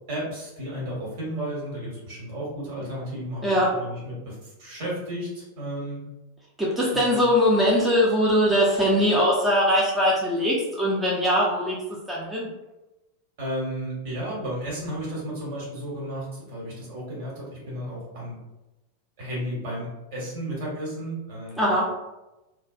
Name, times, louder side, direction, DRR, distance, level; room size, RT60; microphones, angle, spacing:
voice 1, 0.1-6.0 6.9-7.2 13.4-18.4 19.2-21.7, right 1 dB, 50° right, -5 dB, 1.2 m, -33 dB
voice 2, 3.4-3.7 6.6-11.8 12.1-12.5 21.6-21.9, equal, 5° right, -6 dB, 0.5 m, -21 dB
2.3 x 2.2 x 2.4 m, 0.99 s
figure-of-eight pair, 90°, 0 cm